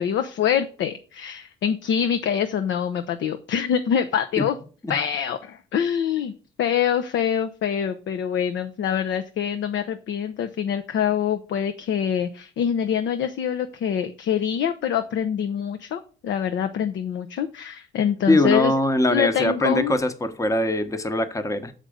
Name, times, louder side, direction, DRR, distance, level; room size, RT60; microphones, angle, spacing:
voice 1, 0.0-4.6 4.9-6.3 6.6-18.7 19.1-19.9, left 8 dB, 70° left, 0.7 m, -25 dB
voice 2, 18.3-21.7, left 1 dB, 15° left, 0.9 m, -22 dB
6.6 x 5.1 x 4.9 m
cardioid pair, 90°, 20 cm